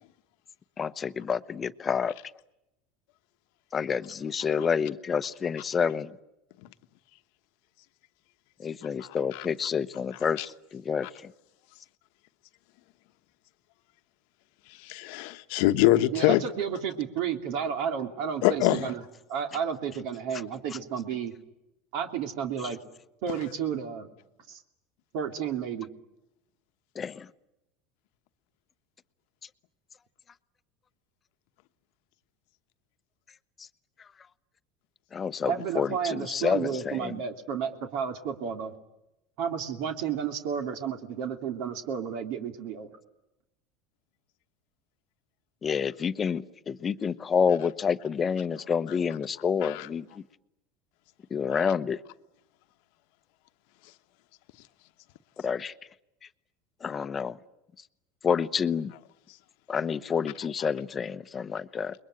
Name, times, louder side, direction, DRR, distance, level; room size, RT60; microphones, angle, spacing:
voice 1, 0.8-2.2 3.7-6.2 8.6-11.3 20.7-20.8 26.9-27.3 33.6-33.7 35.1-37.2 45.6-50.2 51.3-52.0 55.4-55.7 56.8-57.4 58.2-58.9 59.7-61.9, left 6 dB, 25° left, 0.9 m, -29 dB
voice 2, 14.8-16.4 18.4-18.9 49.6-49.9, left 16 dB, 70° left, 1.1 m, -24 dB
voice 3, 16.1-19.0 19.3-21.3 21.9-22.8 23.2-24.1 24.5-24.6 25.1-25.9 35.5-38.7 39.4-42.9, right 7 dB, 65° right, 2.9 m, -32 dB
29.0 x 22.0 x 9.1 m
supercardioid pair, 125°, 0 cm